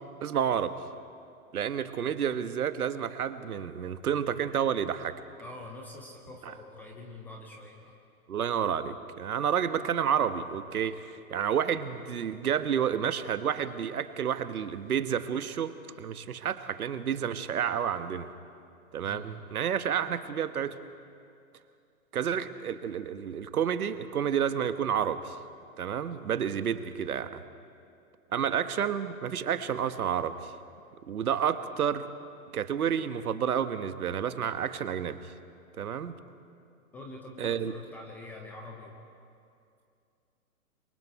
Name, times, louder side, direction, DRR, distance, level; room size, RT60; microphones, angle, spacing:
voice 1, 0.2-0.7 1.5-5.2 8.3-18.3 18.9-20.8 22.1-25.4 25.8-27.4 28.3-30.5 31.1-32.1 32.5-35.3 35.8-36.2 37.4-37.7, right 8 dB, 70° right, 11 dB, 1.3 m, -30 dB
voice 2, 5.4-7.9 19.0-19.3 36.9-39.0, left 2 dB, 5° left, 0 dB, 0.4 m, -45 dB
27.5 x 23.0 x 4.6 m, 2.5 s
hypercardioid pair, 125°, 45 cm